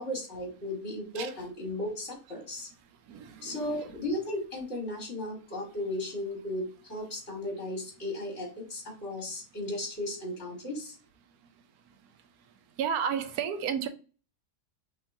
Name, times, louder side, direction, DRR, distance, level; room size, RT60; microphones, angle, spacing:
voice 1, 0.0-2.7 3.4-11.0, left 1 dB, 50° left, 2.0 m, -35 dB
voice 2, 3.1-3.8 12.8-13.9, right 7 dB, 85° right, 1.1 m, -32 dB
5.7 x 3.2 x 2.6 m
omnidirectional pair, 1.6 m